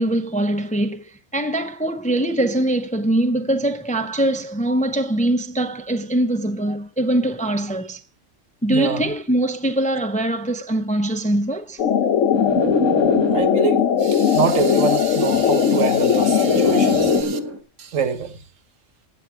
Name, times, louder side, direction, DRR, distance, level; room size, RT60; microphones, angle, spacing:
voice 1, 0.0-8.0 8.6-11.8, right 1 dB, 10° left, 0.6 m, -22 dB
voice 2, 8.7-9.1 13.3-17.4 17.8-18.4, right 7 dB, 75° right, 1.5 m, -25 dB
sound 1, 11.8-17.2, left 8 dB, 80° left, 1.2 m, -19 dB
sound 2, 12.3-13.8 14.9-17.6, equal, 20° right, 1.3 m, -25 dB
15.5 x 8.3 x 4.8 m
omnidirectional pair, 1.3 m